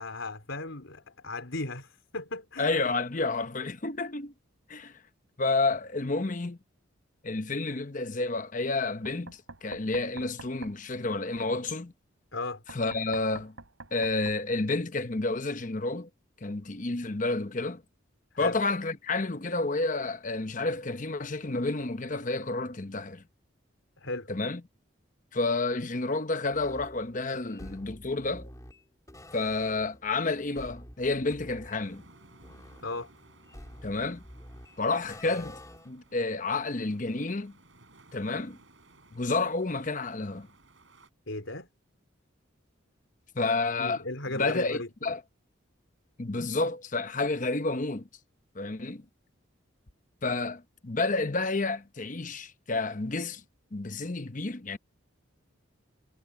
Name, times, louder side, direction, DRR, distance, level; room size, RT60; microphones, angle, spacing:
voice 1, 0.0-2.7 12.3-12.6 18.3-18.6 24.0-24.3 32.8-33.1 41.3-41.7 43.8-44.9, left 2 dB, 75° left, 3.9 m, -36 dB
voice 2, 2.6-4.3 4.7-4.9 5.4-6.6 7.2-11.9 12.7-13.5 13.9-16.1 16.4-17.8 18.4-23.2 24.3-24.6 25.3-28.5 29.3-32.0 33.8-34.2 34.8-37.5 38.1-38.6 39.1-40.5 43.3-44.0 44.4-45.2 46.2-48.1 48.5-49.0 50.2-53.4 53.7-54.8, left 3 dB, 40° left, 0.9 m, -30 dB
Knock, 9.0-10.8 12.7-14.4, right 3 dB, 90° right, 6.3 m, -46 dB
sound 1, 26.5-36.1, left 1 dB, 15° left, 4.1 m, -49 dB
sound 2, 31.8-41.1, right 2 dB, 70° right, 6.6 m, -59 dB
head